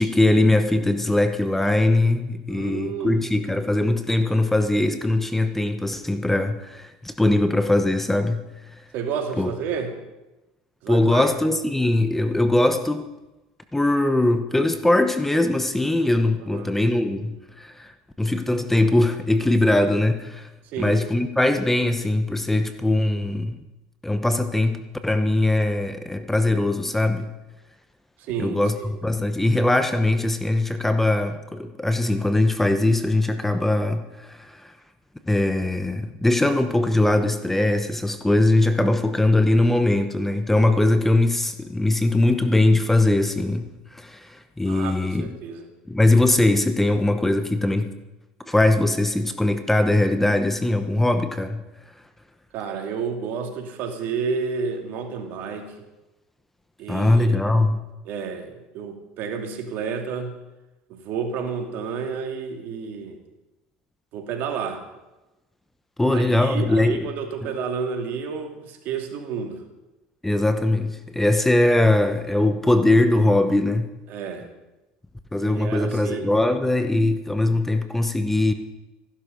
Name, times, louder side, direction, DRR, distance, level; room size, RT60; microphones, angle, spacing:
voice 1, 0.0-8.4 9.4-9.5 10.9-13.0 13.7-17.9 18.2-20.5 20.8-23.6 24.0-27.3 28.4-34.7 35.3-45.3 45.9-47.9 48.5-51.6 56.9-57.8 66.0-67.1 67.4-67.5 70.2-73.9 75.3-78.5, left 2 dB, 5° left, 8 dB, 1.0 m, -21 dB
voice 2, 2.5-3.2 8.9-9.9 10.8-11.3 16.4-16.7 20.6-21.0 28.2-28.9 44.7-45.7 52.5-55.7 56.8-57.6 58.0-60.4 60.9-63.2 64.1-64.9 66.1-69.6 74.1-74.5 75.4-76.3, right 6 dB, 60° right, 4 dB, 2.3 m, -31 dB
15.0 x 11.5 x 5.3 m, 1.0 s
supercardioid pair, 95°, 4 cm